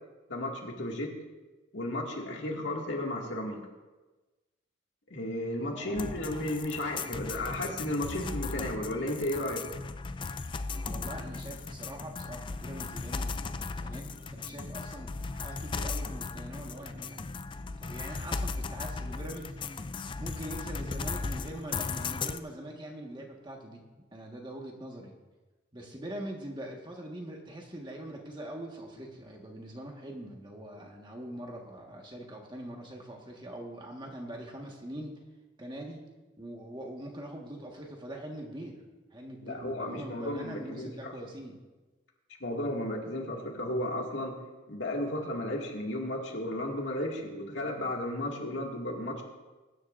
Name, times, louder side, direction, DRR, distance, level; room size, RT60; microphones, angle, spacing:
voice 1, 0.3-1.1 1.7-3.6 5.1-9.7 39.4-41.1 42.4-44.4 44.7-49.2, left 1 dB, 70° left, 0 dB, 2.2 m, -34 dB
voice 2, 5.6-6.3 10.9-19.5 20.2-25.1 25.7-35.1 35.6-36.0 36.4-38.8 39.1-41.6, right 1 dB, 25° right, 0 dB, 1.6 m, -43 dB
sound 1, 6.0-22.4, left 4 dB, 25° left, 0.4 m, -37 dB
21.5 x 10.5 x 2.6 m, 1.2 s
head